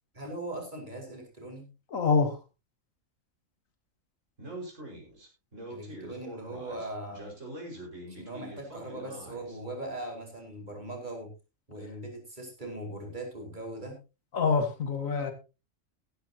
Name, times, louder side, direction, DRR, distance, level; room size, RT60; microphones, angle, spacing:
voice 1, 0.1-1.7 5.7-7.3 8.1-11.3 11.7-14.0, right 1 dB, 35° right, 1 dB, 5.1 m, -40 dB
voice 2, 1.9-2.3 14.3-15.3, left 5 dB, 80° left, 8 dB, 2.2 m, -25 dB
Speech, 4.4-9.6, right 1 dB, 70° right, 5.9 m, -44 dB
15.5 x 13.5 x 2.9 m, 0.29 s
omnidirectional pair, 1.4 m